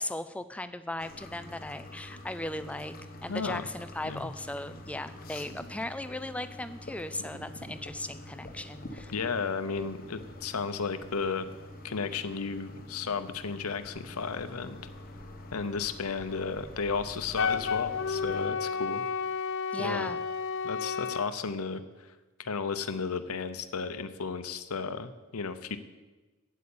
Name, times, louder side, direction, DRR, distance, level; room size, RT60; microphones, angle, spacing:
voice 1, 0.0-9.1 19.7-20.2, left 1 dB, 5° left, 12 dB, 0.4 m, -37 dB
sound 1, 1.0-18.5, left 1 dB, 45° left, 1.1 m, -46 dB
voice 2, 3.3-3.6 4.0-4.3 9.1-11.5 11.8-14.8 15.5-19.0 19.8-20.1 20.6-22.1 22.4-25.8, left 5 dB, 90° left, 11 dB, 0.8 m, -34 dB
Wind instrument woodwind instrument, 17.4-21.3, left 6 dB, 60° left, 0.5 m, -31 dB
8.4 x 8.3 x 8.6 m, 1.2 s
head